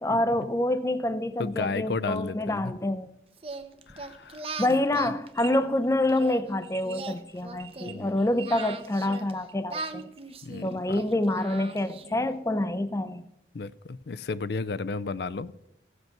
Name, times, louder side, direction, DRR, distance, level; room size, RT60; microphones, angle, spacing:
voice 1, 0.0-3.1 4.6-10.1 10.6-13.2, left 1 dB, 15° left, 0.5 m, -27 dB
voice 2, 1.4-2.8 3.9-4.8 7.9-8.2 10.4-11.0 13.5-15.5, left 4 dB, 65° left, 0.5 m, -33 dB
Singing, 3.4-6.4 6.8-9.3 9.7-12.3, right 3 dB, 30° right, 0.8 m, -40 dB
sound 1, 5.3-5.6 5.8-10.2, right 9 dB, 85° right, 1.3 m, -46 dB
16.0 x 8.0 x 6.0 m
head